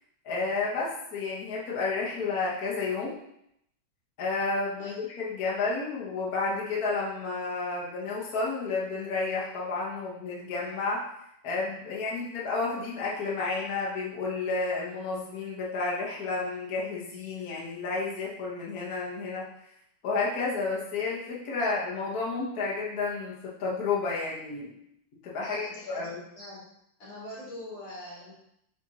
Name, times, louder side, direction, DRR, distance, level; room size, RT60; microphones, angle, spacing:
voice 1, 0.2-3.2 4.2-11.0 11.4-19.4 20.0-24.7 25.2-25.6 25.9-26.2, left 3 dB, 50° left, -5 dB, 1.6 m, -31 dB
voice 2, 25.4-26.6 27.0-28.3, left 1 dB, 85° left, -8 dB, 3.7 m, -43 dB
7.7 x 4.2 x 2.9 m, 0.76 s
omnidirectional pair, 2.4 m